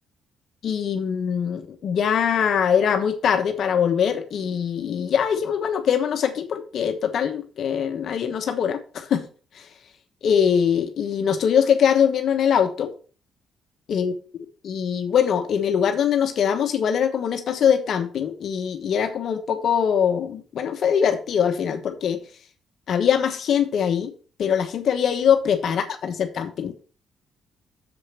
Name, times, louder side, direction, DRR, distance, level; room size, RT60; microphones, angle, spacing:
voice 1, 0.6-9.3 9.5-9.7 10.2-12.9 13.9-14.1 14.6-22.2 22.9-24.1 24.4-26.7, left 8 dB, 65° left, 6 dB, 1.1 m, -22 dB
7.1 x 5.0 x 7.1 m, 0.39 s
cardioid pair, 90°, 0 cm